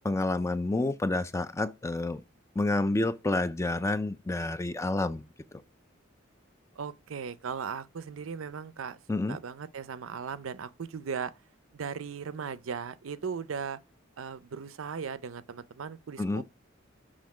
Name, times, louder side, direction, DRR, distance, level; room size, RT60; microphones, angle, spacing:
voice 1, 0.0-2.2 2.6-5.2 9.1-9.4 16.2-16.4, left 2 dB, 15° left, 0.3 m, -29 dB
voice 2, 6.8-9.0 9.3-11.3 11.7-13.8 14.2-16.4, right 6 dB, 85° right, 0.5 m, -37 dB
6.5 x 3.7 x 4.7 m
head